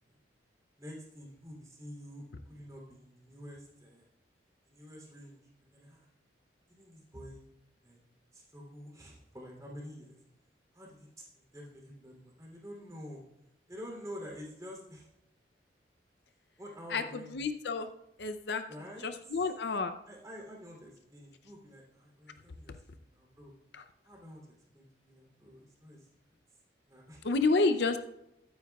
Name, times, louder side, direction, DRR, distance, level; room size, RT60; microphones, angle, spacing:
voice 1, 0.8-4.1 4.7-6.1 6.7-7.5 7.8-8.0 8.3-10.2 10.7-11.3 11.5-13.2 13.7-15.1 16.6-17.6 18.6-19.5 20.0-22.8 23.1-23.5 24.0-26.1 26.9-27.2, equal, 20° right, -2 dB, 3.1 m, -48 dB
voice 2, 16.9-17.9 18.2-18.6 19.0-19.9 22.7-22.8 23.7-23.8 27.2-28.0, left 3 dB, 60° left, 9 dB, 0.6 m, -30 dB
21.5 x 9.4 x 2.4 m, 0.86 s
head